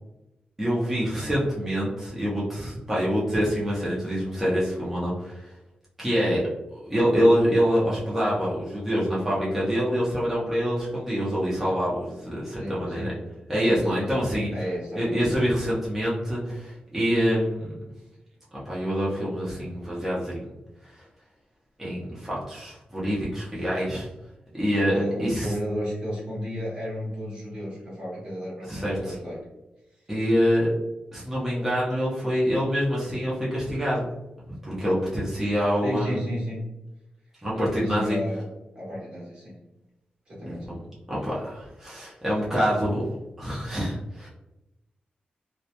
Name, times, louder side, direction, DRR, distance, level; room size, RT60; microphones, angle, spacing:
voice 1, 0.6-5.5 6.0-6.4 6.7-13.1 13.5-14.5 15.0-17.7 18.7-20.4 20.8-21.0 21.8-24.1 24.5-25.5 28.7-29.2 30.1-30.7 31.1-34.0 34.6-36.2 37.4-38.2 40.7-40.8 41.1-44.3, equal, 10° right, -7 dB, 0.5 m, -26 dB
voice 2, 12.6-13.1 13.5-14.3 14.5-15.2 23.6-24.0 24.8-29.4 35.8-36.6 37.6-38.4 38.7-39.5 40.3-40.7, equal, 35° right, -7 dB, 0.8 m, -33 dB
2.2 x 2.1 x 2.7 m, 0.97 s
wide cardioid pair, 170°, 3 cm